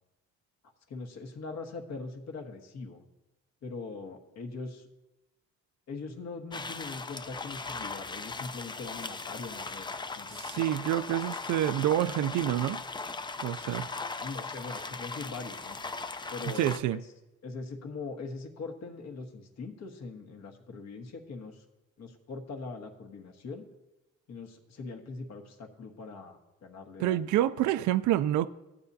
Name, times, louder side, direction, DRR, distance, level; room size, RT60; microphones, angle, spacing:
voice 1, 0.9-3.0 3.6-4.9 5.9-9.9 10.1-10.7 14.2-15.8 16.3-17.0 17.4-21.6 22.0-23.6 24.3-27.6, left 3 dB, 60° left, 1.4 m, -41 dB
sound 1, 6.5-16.8, left 4 dB, 15° left, 0.4 m, -38 dB
voice 2, 10.3-12.8 13.4-13.9 16.6-17.0 27.0-28.5, right 13 dB, 75° right, 0.5 m, -27 dB
15.0 x 8.6 x 2.8 m
cardioid pair, 90°, 30 cm